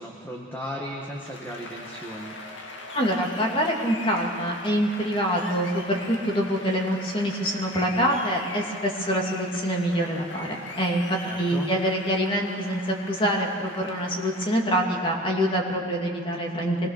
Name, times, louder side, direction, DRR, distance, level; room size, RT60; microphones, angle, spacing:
voice 1, 0.0-2.4 11.2-11.7, equal, 10° left, -2 dB, 1.7 m, -36 dB
Applause, 1.0-14.6, left 2 dB, 70° left, 2.1 m, -41 dB
voice 2, 2.9-11.0 11.4-16.9, equal, 25° left, 0 dB, 2.6 m, -25 dB
24.5 x 20.5 x 6.7 m, 2.8 s
head